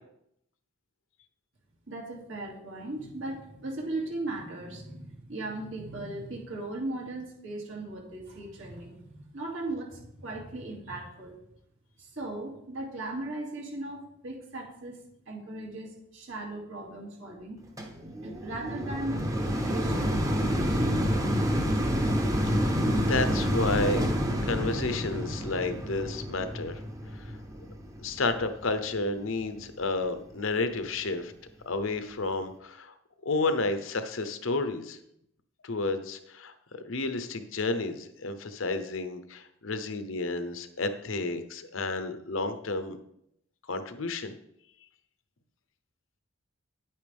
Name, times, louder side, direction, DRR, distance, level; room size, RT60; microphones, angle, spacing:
voice 1, 1.9-11.4 12.0-15.0 15.3-17.6 18.2-19.3 19.7-21.0, right 2 dB, 70° right, -1 dB, 2.6 m, -38 dB
sound 1, 17.8-29.0 29.6-29.7, equal, 15° right, 0.9 m, -28 dB
voice 2, 22.6-24.0 24.4-26.8 28.0-31.3 31.7-32.9 33.2-35.0 35.6-36.5 36.8-43.0 43.7-44.3, left 3 dB, 75° left, 10 dB, 0.9 m, -31 dB
10.0 x 8.7 x 3.5 m, 0.76 s
head